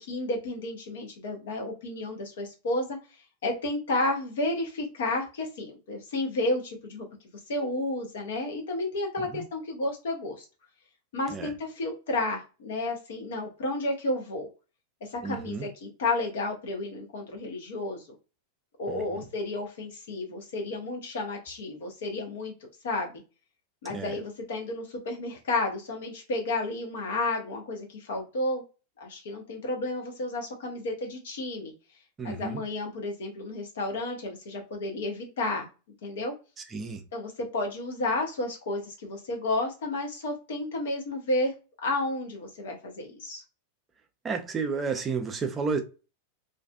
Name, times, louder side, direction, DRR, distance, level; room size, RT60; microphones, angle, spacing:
voice 1, 0.0-3.0 3.4-7.1 7.5-10.4 11.1-14.5 15.1-18.0 18.8-22.5 22.8-23.1 23.8-28.6 29.0-31.7 32.2-35.7 36.0-36.3 37.1-41.5 41.8-43.4, left 2 dB, 60° left, 0.8 m, -31 dB
voice 2, 15.2-15.7 18.9-19.2 23.9-24.1 32.2-32.6 36.6-37.0 44.2-45.8, right 5 dB, 20° right, 0.5 m, -32 dB
2.5 x 2.4 x 2.3 m
figure-of-eight pair, 90°, 0 cm